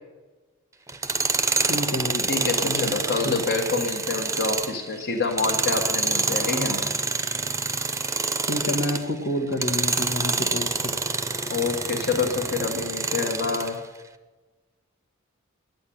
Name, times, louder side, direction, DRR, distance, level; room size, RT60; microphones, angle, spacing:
Tools, 0.9-9.1 9.5-13.7, right 4 dB, 15° right, 0.6 m, -27 dB
voice 1, 1.6-2.3 2.6-2.9 3.2-3.4 8.4-10.9, left 1 dB, 85° left, -2 dB, 1.5 m, -28 dB
voice 2, 2.3-6.8 11.5-13.8, left 4 dB, 55° left, 1 dB, 1.3 m, -27 dB
10.5 x 8.8 x 10.0 m, 1.2 s
head